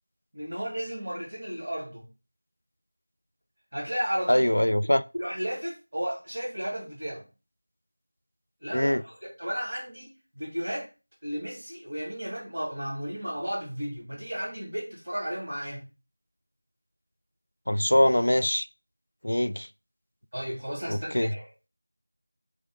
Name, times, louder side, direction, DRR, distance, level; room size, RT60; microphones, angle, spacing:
voice 1, 0.3-2.1 3.7-4.5 5.2-7.2 8.6-10.9 11.2-15.8 20.3-21.5, equal, 40° right, 2.1 m, -34 dB
voice 2, 4.3-5.0 8.7-9.0 17.7-18.7 19.2-19.7 20.9-21.3, left 1 dB, 85° left, 0.4 m, -23 dB
3.6 x 3.3 x 3.7 m
figure-of-eight pair, 180°, 0 cm